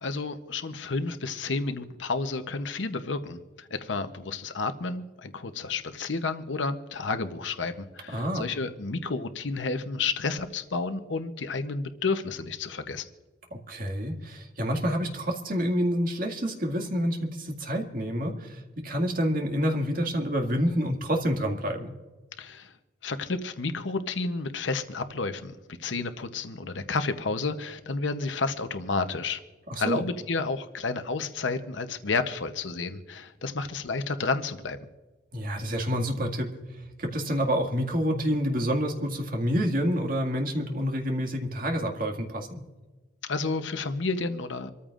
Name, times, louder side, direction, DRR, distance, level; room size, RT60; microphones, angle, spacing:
voice 1, 0.0-13.1 22.4-22.7 23.0-29.4 29.7-34.8 43.2-44.7, left 3 dB, 85° left, 9 dB, 0.9 m, -31 dB
voice 2, 8.1-8.5 13.5-21.9 29.7-30.0 35.3-36.5 37.0-42.6, equal, 50° right, 3 dB, 2.0 m, -28 dB
26.5 x 14.0 x 2.5 m, 1.2 s
head